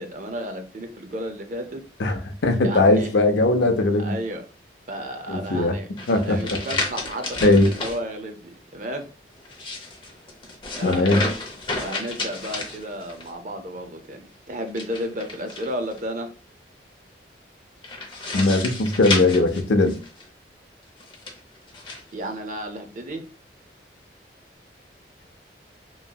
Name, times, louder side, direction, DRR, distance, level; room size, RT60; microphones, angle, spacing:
voice 1, 0.0-1.8 2.6-3.1 4.0-4.4 4.9-5.9 6.2-9.1 10.8-11.1 11.8-14.2 14.5-16.3 22.1-23.2, equal, 45° right, 6 dB, 0.5 m, -32 dB
voice 2, 2.0-4.1 5.3-5.8 6.1-6.6 7.4-7.7 10.8-11.3 18.3-20.0, left 2 dB, 75° left, 5 dB, 0.5 m, -19 dB
sound 1, 6.0-8.0 9.4-13.3 14.7-16.0 17.8-20.3 21.0-22.0, left 2 dB, 25° left, 0.6 m, -31 dB
3.0 x 2.7 x 2.2 m, 0.35 s
head